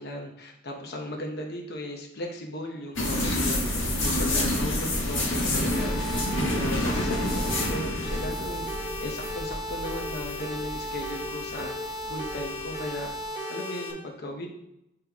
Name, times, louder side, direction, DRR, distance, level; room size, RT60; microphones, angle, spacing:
voice 1, 0.0-11.7 12.1-13.1 13.5-14.5, left 1 dB, 55° left, 2 dB, 0.8 m, -37 dB
sound 1, 3.0-13.1, left 1 dB, 80° left, 1.4 m, -29 dB
sound 2, 5.7-13.9, left 1 dB, 40° left, 1.2 m, -35 dB
8.9 x 3.4 x 3.5 m, 0.82 s
head